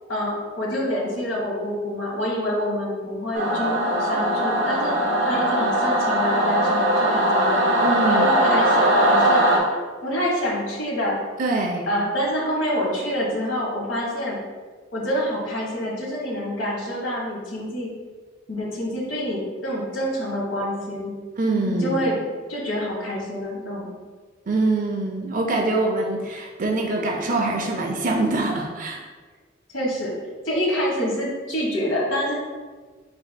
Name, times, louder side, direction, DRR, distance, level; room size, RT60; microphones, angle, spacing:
voice 1, 0.1-4.9 5.2-7.6 8.0-9.4 9.7-11.2 11.9-14.4 14.9-17.9 18.5-21.1 21.7-22.2 22.5-23.9 29.7-30.1 30.4-32.3, equal, 75° left, -3 dB, 1.4 m, -27 dB
Singing / Musical instrument, 3.3-9.6, right 1 dB, 65° right, 0.9 m, -20 dB
voice 2, 7.8-8.2 11.4-11.9 21.4-22.0 24.5-29.0, right 2 dB, 40° right, 1 dB, 0.5 m, -24 dB
5.3 x 4.2 x 2.2 m, 1.4 s
head